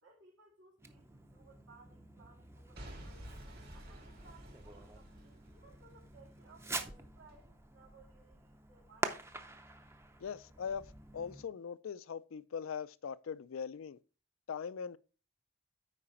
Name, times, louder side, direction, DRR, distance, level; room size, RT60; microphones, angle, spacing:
voice 1, 0.0-3.2 3.7-9.2, right 3 dB, 65° right, 2.2 m, -62 dB
Fireworks, 0.8-11.5, right 2 dB, 10° right, 0.6 m, -46 dB
Boom / Shatter / Crushing, 2.7-6.8 7.3-7.4, equal, 50° right, 2.8 m, -52 dB
voice 2, 10.2-14.0 14.5-15.0, left 6 dB, 80° left, 0.4 m, -41 dB
8.7 x 5.0 x 4.3 m
head